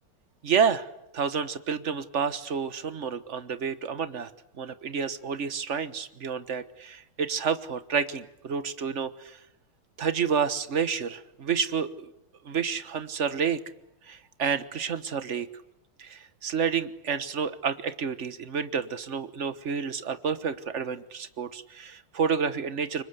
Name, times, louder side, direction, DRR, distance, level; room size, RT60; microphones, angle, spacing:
voice 1, 0.4-0.9 1.1-4.3 4.6-9.4 10.0-12.1 12.4-13.6 14.1-15.5 16.0-23.0, right 6 dB, 40° right, 12 dB, 1.3 m, -29 dB
29.0 x 24.5 x 8.2 m, 0.82 s
omnidirectional pair, 2.4 m